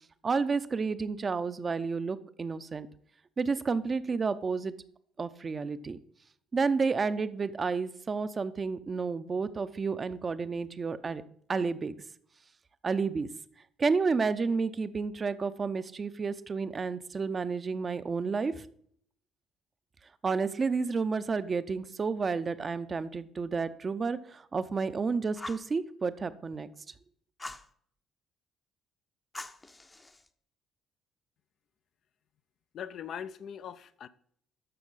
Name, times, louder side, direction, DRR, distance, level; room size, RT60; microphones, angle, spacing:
voice 1, 0.2-2.9 3.4-4.7 5.2-6.0 6.5-11.2 11.5-12.0 12.8-13.3 13.8-18.7 20.2-26.7, right 4 dB, 35° right, 0.6 m, -31 dB
Fire, 25.3-25.7 27.4-27.7 29.3-30.3, left 2 dB, 20° left, 0.7 m, -43 dB
voice 2, 32.7-34.1, left 8 dB, 55° left, 0.4 m, -40 dB
13.5 x 6.1 x 4.0 m
figure-of-eight pair, 50°, 0 cm